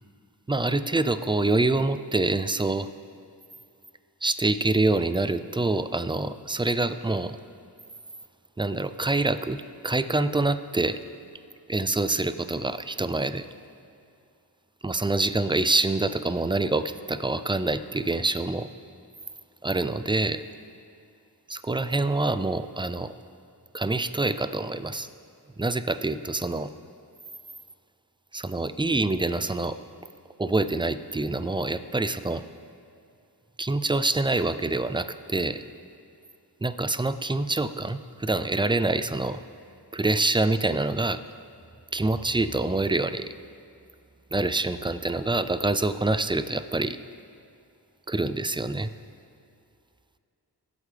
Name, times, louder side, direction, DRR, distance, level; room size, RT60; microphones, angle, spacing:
voice 1, 0.5-2.9 4.2-7.4 8.6-11.0 11.7-13.5 14.8-18.7 19.6-20.4 21.5-23.1 23.7-25.1 25.6-26.7 28.3-29.8 30.4-32.5 33.6-35.6 36.6-39.4 39.9-41.2 41.9-43.3 44.3-47.0 48.1-48.9, right 2 dB, 10° right, 12 dB, 0.4 m, -26 dB
20.5 x 8.1 x 3.4 m, 2.5 s
cardioid pair, 55°, 40 cm